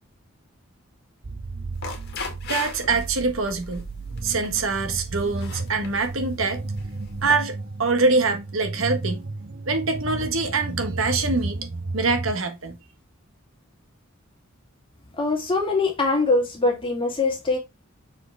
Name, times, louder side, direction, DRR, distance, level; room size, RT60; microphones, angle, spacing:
sound 1, 1.2-12.4, right 2 dB, 45° right, 0.7 m, -33 dB
sound 2, 1.7-3.1 3.5-3.8 4.2-4.6 5.2-6.1 6.8-7.3, left 4 dB, 50° left, 1.9 m, -36 dB
voice 1, 2.5-3.8 4.2-6.6 7.2-9.2 9.6-11.6 11.9-12.8, right 3 dB, 70° right, 1.5 m, -24 dB
voice 2, 15.2-17.6, left 3 dB, 25° left, 2.4 m, -22 dB
6.3 x 5.0 x 3.4 m
head